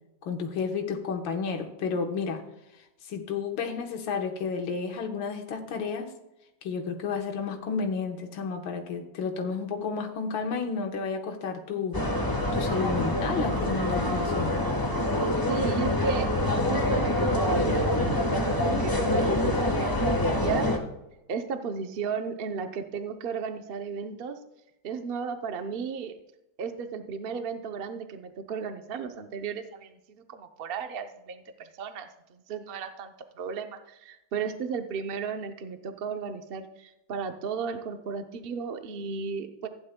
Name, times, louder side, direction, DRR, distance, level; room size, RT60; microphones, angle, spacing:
voice 1, 0.2-2.4 3.1-6.1 6.6-14.5, left 5 dB, 85° left, 3 dB, 1.9 m, -31 dB
sound 1, 11.9-20.8, left 1 dB, 15° left, 0.8 m, -26 dB
voice 2, 15.5-16.3 16.7-20.7 21.3-24.4 24.8-26.2 26.6-39.7, right 6 dB, 75° right, 7 dB, 0.5 m, -35 dB
15.0 x 10.5 x 2.2 m, 0.93 s
omnidirectional pair, 2.1 m